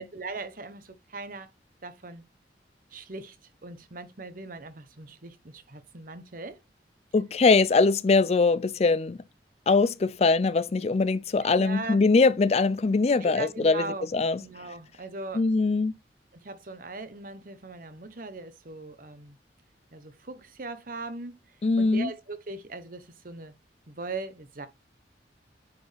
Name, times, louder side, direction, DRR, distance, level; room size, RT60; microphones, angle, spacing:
voice 1, 0.0-1.5 1.8-2.2 2.9-6.6 11.6-12.0 13.2-14.1 14.4-15.4 16.3-19.4 19.9-23.5 23.9-24.7, right 3 dB, 50° right, 1.1 m, -40 dB
voice 2, 7.1-9.2 9.7-14.4 15.3-15.9 21.6-22.1, left 3 dB, 35° left, 0.4 m, -22 dB
9.6 x 4.3 x 3.4 m
head